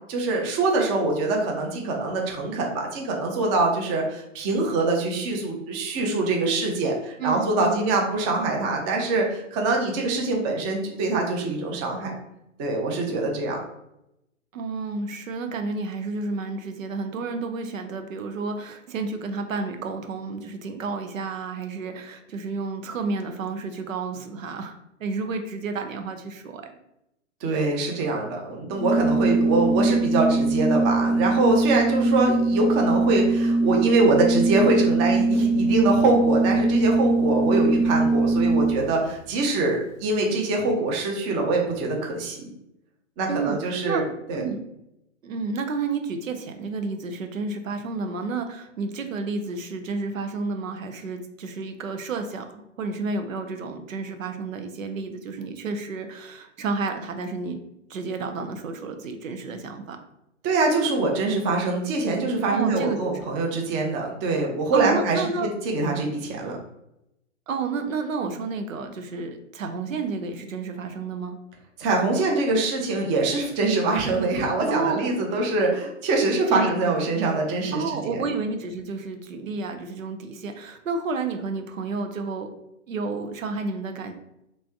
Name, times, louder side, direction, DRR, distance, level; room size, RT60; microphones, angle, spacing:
voice 1, 0.1-12.1 12.6-13.6 27.4-42.4 43.2-44.5 60.4-66.6 71.8-78.2, right 3 dB, 25° right, 1 dB, 0.6 m, -24 dB
voice 2, 7.2-7.9 14.5-26.7 43.3-44.0 44.3-44.6 45.2-57.6 57.9-60.0 62.5-63.1 64.7-65.5 67.5-71.4 74.7-75.1 76.5-76.9 77.7-82.5 82.9-84.1, right 4 dB, 80° right, 7 dB, 0.7 m, -31 dB
Organ, 28.8-39.0, right 2 dB, 85° left, 0.6 m, -22 dB
3.1 x 2.7 x 3.5 m, 0.83 s
hypercardioid pair, 125°, 39 cm